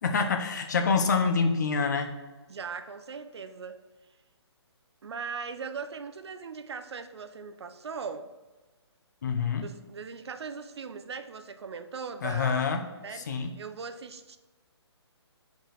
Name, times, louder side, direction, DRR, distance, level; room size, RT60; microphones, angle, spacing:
voice 1, 0.0-2.1 9.2-9.7 12.2-12.9 13.1-13.5, left 5 dB, 40° left, 0.7 m, -26 dB
voice 2, 2.5-3.8 5.0-8.3 9.6-12.6 13.0-14.4, right 5 dB, 70° right, 0.7 m, -39 dB
5.2 x 5.0 x 5.8 m
hypercardioid pair, 170°, 14 cm